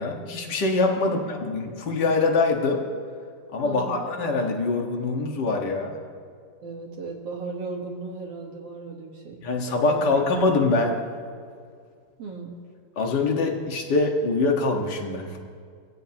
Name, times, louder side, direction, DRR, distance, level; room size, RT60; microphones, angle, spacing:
voice 1, 0.0-2.8 3.5-6.0 9.4-11.0 13.0-15.4, left 3 dB, 50° left, 1 dB, 1.3 m, -24 dB
voice 2, 1.0-1.3 3.6-4.1 6.6-9.4 9.9-10.2 12.2-12.6, right 4 dB, 55° right, -1 dB, 1.9 m, -36 dB
24.5 x 17.0 x 2.9 m, 2.1 s
omnidirectional pair, 4.1 m